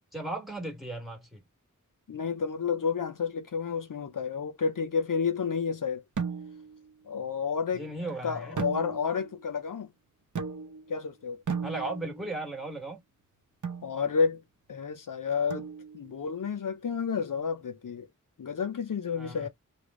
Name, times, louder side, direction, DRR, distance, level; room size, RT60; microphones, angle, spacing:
voice 1, 0.1-1.4 7.7-8.6 11.6-13.0 19.1-19.5, right 2 dB, ahead, 1.7 m, -36 dB
voice 2, 2.1-6.0 7.1-7.9 8.2-9.9 10.9-11.4 13.8-14.4 14.7-15.7 15.9-18.1 18.4-19.5, left 6 dB, 75° left, 0.6 m, -30 dB
sound 1, 6.2-6.8 8.6-9.3 10.3-10.9 11.5-12.3 13.6-14.0 15.5-16.1, right 5 dB, 65° right, 0.7 m, -35 dB
3.4 x 2.2 x 3.6 m
wide cardioid pair, 55°, 32 cm